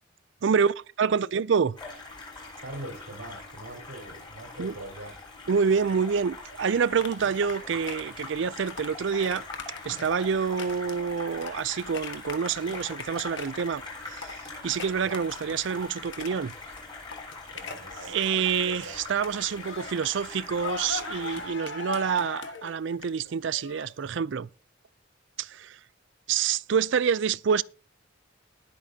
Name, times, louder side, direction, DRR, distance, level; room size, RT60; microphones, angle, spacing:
voice 1, 0.4-1.8 4.6-4.7 5.5-9.5 9.8-13.8 14.1-14.3 14.6-16.5 18.1-24.5 25.4-25.8 26.3-27.6, right 6 dB, 65° right, 0.4 m, -27 dB
sound 1, 1.8-21.5, left 3 dB, 20° left, 6.7 m, -42 dB
voice 2, 2.6-5.1 15.0-15.2 17.5-19.2, right 1 dB, 90° right, 4.5 m, -42 dB
sound 2, 7.0-16.8 17.1-18.9 19.2-24.1, left 5 dB, 65° left, 1.5 m, -41 dB
20.0 x 8.5 x 2.8 m
head